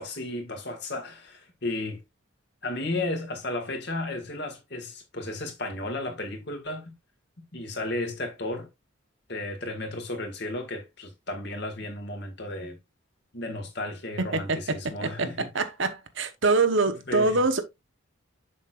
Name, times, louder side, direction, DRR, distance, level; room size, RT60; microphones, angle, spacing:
voice 1, 0.0-2.0 2.6-6.9 7.5-8.7 9.3-12.8 13.3-15.5 16.9-17.4, left 2 dB, 55° left, 2.0 m, -34 dB
voice 2, 14.2-14.8 15.0-15.1 15.5-17.6, right 3 dB, 65° right, 1.0 m, -24 dB
7.2 x 6.4 x 2.5 m
head